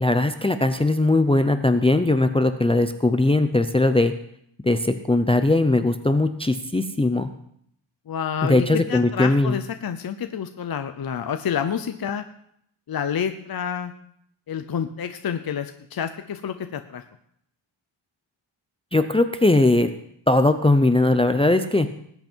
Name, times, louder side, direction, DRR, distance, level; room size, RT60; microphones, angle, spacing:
voice 1, 0.0-4.1 4.6-7.3 8.5-9.6 18.9-19.9 20.3-21.9, left 2 dB, 10° left, 8 dB, 0.6 m, -19 dB
voice 2, 8.1-12.2 12.9-13.9 14.5-17.0, left 8 dB, 50° left, 8 dB, 0.8 m, -28 dB
19.5 x 8.1 x 4.5 m, 0.70 s
wide cardioid pair, 135°, 46 cm